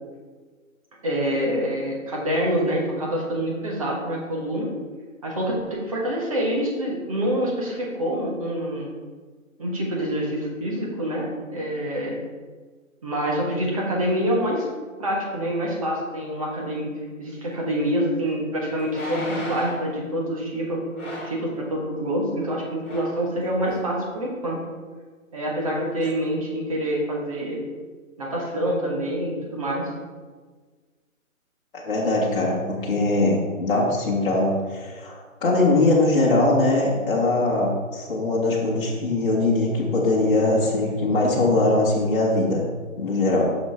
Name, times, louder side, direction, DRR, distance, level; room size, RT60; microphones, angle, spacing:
voice 1, 1.0-4.7 5.2-8.9 9.6-12.2 13.0-14.7 15.0-16.9 17.2-20.8 21.2-24.6 25.3-27.6 28.2-29.9, equal, 25° right, -2 dB, 1.3 m, -26 dB
sound 1, 17.8-17.9 18.9-19.9 20.9-21.4 22.4-22.5 22.8-23.2 23.7-23.8, left 1 dB, 10° left, 0.9 m, -32 dB
voice 2, 31.7-42.6 43.0-43.4, left 2 dB, 40° left, -5 dB, 1.3 m, -21 dB
6.4 x 5.9 x 4.3 m, 1.5 s
hypercardioid pair, 165°, 42 cm